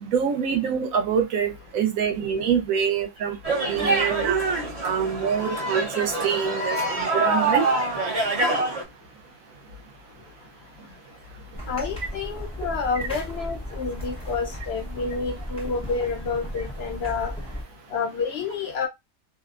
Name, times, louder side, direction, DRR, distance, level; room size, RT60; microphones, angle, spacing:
voice 1, 0.0-3.4 3.7-4.4 4.8-7.6, right 7 dB, 70° right, 1.0 m, -25 dB
sound 1, 3.4-8.8, right 2 dB, 40° right, 0.5 m, -25 dB
sound 2, 11.5-17.6, equal, 10° left, 0.4 m, -35 dB
voice 2, 11.7-17.3 17.9-18.9, left 5 dB, 75° left, 0.5 m, -29 dB
2.5 x 2.0 x 2.4 m
omnidirectional pair, 1.6 m